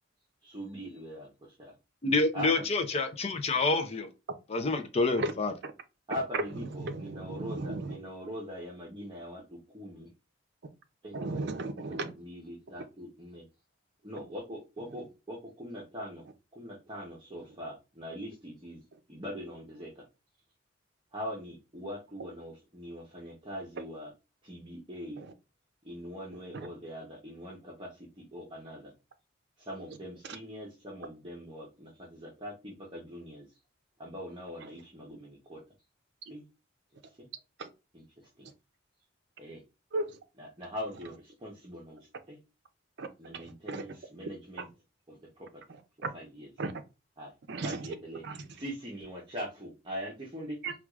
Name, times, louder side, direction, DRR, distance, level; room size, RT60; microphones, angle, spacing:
voice 1, 0.5-1.3 2.3-2.6 6.1-10.1 11.0-11.4 11.8-13.4 14.0-16.3 16.5-18.8 19.1-20.0 21.1-24.1 24.4-25.2 25.8-28.9 29.6-33.5 34.0-35.6 36.3-36.4 37.2-37.3 37.9-38.5 39.4-39.6 40.4-42.0 42.3-42.4 43.2-44.7 45.1-45.5 46.1-46.5 47.2-47.3 47.6-48.2 48.5-50.6, equal, 25° right, 0.8 m, -42 dB
voice 2, 2.0-4.1 4.5-5.5, left 3 dB, 35° left, 0.5 m, -28 dB
voice 3, 6.3-8.0 11.1-12.1 14.9-15.0 25.2-25.3 26.5-26.7 30.2-30.4 34.6-34.7 36.3-36.4 37.6-37.7 39.9-40.2 43.0-43.1 43.3-44.0 45.7-46.1 46.6-46.7 47.5-47.9 48.2-48.6 50.6-50.7, right 3 dB, 65° right, 0.5 m, -36 dB
4.5 x 2.4 x 2.3 m
head